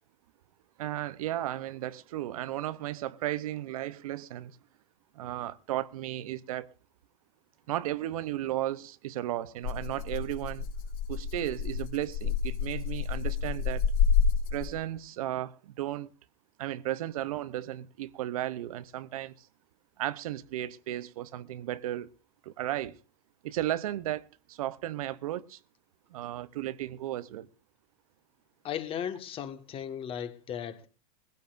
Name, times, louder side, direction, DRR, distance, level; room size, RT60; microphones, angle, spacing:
voice 1, 0.8-4.6 5.1-6.7 7.7-10.7 11.1-13.8 14.5-16.1 16.6-19.5 20.0-22.1 22.4-23.0 23.4-25.6 26.1-27.5, right 13 dB, 75° right, 0.8 m, -34 dB
Rattle (instrument), 9.6-15.0, left 6 dB, 70° left, 4.4 m, -29 dB
voice 2, 28.6-30.9, left 9 dB, 30° left, 1.5 m, -36 dB
21.0 x 16.0 x 2.6 m
supercardioid pair, 125°, 19 cm